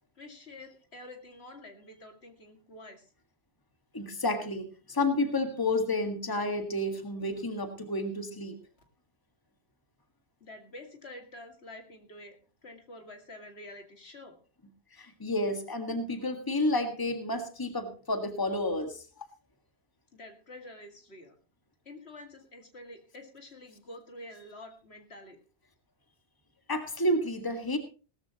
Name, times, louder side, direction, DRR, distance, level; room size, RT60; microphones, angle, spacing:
voice 1, 0.2-3.1 7.2-7.3 10.4-12.4 12.6-14.4 20.1-21.3 21.8-25.4, left 1 dB, 75° left, 4 dB, 2.4 m, -48 dB
voice 2, 3.9-8.6 14.9-19.0 26.7-27.8, left 1 dB, 20° left, 6 dB, 1.8 m, -30 dB
17.5 x 14.0 x 2.9 m, 0.36 s
omnidirectional pair, 1.1 m